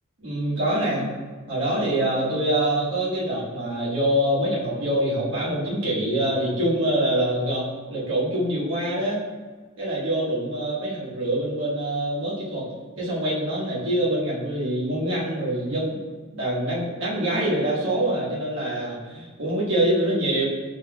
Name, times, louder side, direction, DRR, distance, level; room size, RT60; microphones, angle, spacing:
voice 1, 0.2-1.1 1.5-9.2 9.8-12.6 13.0-16.0 16.3-20.4, right 1 dB, 60° right, -7 dB, 1.3 m, -25 dB
5.8 x 2.9 x 2.2 m, 1.4 s
head